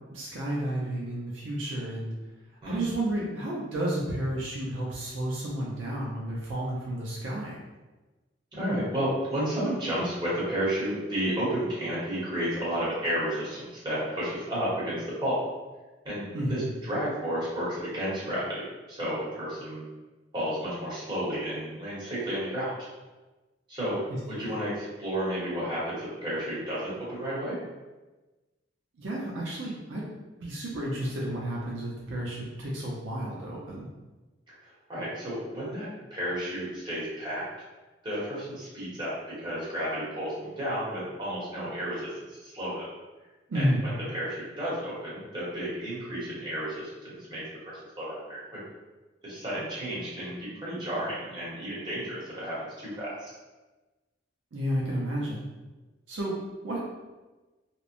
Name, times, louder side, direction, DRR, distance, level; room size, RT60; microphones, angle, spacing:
voice 1, 0.1-2.1 2.6-7.6 16.3-16.7 24.4-24.5 29.0-30.1 30.4-33.9 43.5-43.9 54.5-55.5 56.1-56.3 56.6-56.8, right 1 dB, 70° right, -5 dB, 0.5 m, -31 dB
voice 2, 8.5-15.4 16.0-19.8 20.3-22.9 23.7-27.6 34.9-37.4 38.0-42.8 43.5-48.6 49.2-53.3, equal, 25° right, -9 dB, 1.0 m, -32 dB
2.9 x 2.0 x 2.5 m, 1.2 s
head